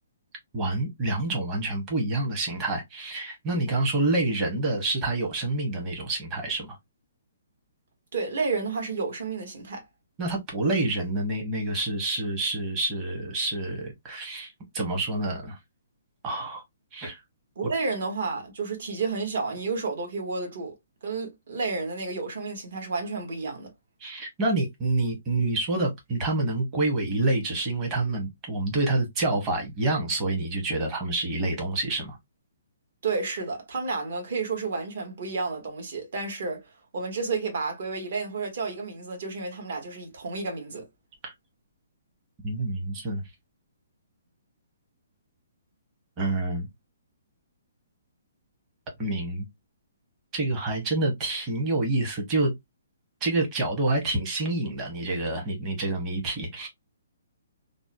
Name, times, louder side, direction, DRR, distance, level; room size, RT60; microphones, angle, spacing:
voice 1, 0.5-6.8 10.2-15.6 16.2-16.6 16.9-17.2 24.0-32.2 41.2-41.3 42.4-43.2 46.2-46.7 49.0-49.5 50.3-52.5 53.2-56.7, right 2 dB, 20° right, 0.9 m, -27 dB
voice 2, 8.1-9.8 17.6-20.7 21.0-23.7 33.0-40.9, right 4 dB, 55° right, 1.1 m, -31 dB
2.7 x 2.0 x 2.5 m
hypercardioid pair, 165°, 0 cm